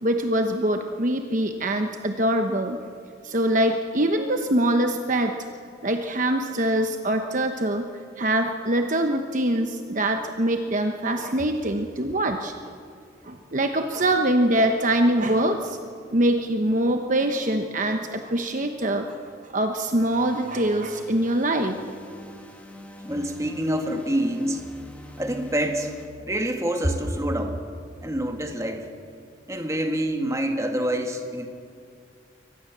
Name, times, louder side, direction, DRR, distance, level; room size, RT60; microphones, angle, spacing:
voice 1, 0.0-2.8 3.2-5.3 5.8-7.9 8.2-12.8 13.2-15.8 16.1-21.8, right 1 dB, 40° right, 5 dB, 1.0 m, -24 dB
sound 1, 20.1-26.1, equal, 5° left, 2.2 m, -43 dB
voice 2, 23.0-24.6 25.2-25.9 26.2-27.6 28.0-28.9 29.5-31.5, right 1 dB, 15° right, 4 dB, 1.8 m, -26 dB
23.5 x 19.5 x 7.5 m, 2.3 s
head